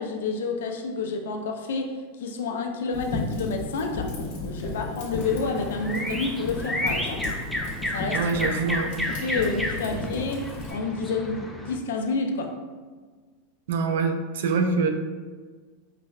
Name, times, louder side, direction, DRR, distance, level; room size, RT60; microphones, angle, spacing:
voice 1, 0.0-4.1 4.4-7.2 7.9-8.3 9.2-12.5, left 4 dB, 85° left, 3 dB, 0.4 m, -29 dB
Fire, 2.9-10.7, left 2 dB, 65° left, 1.1 m, -34 dB
sound 1, 5.2-11.8, left 1 dB, ahead, 0.3 m, -32 dB
voice 2, 8.1-9.0 13.7-14.9, right 4 dB, 75° right, 6 dB, 0.4 m, -25 dB
4.6 x 2.1 x 2.3 m, 1.5 s
supercardioid pair, 150°, 0 cm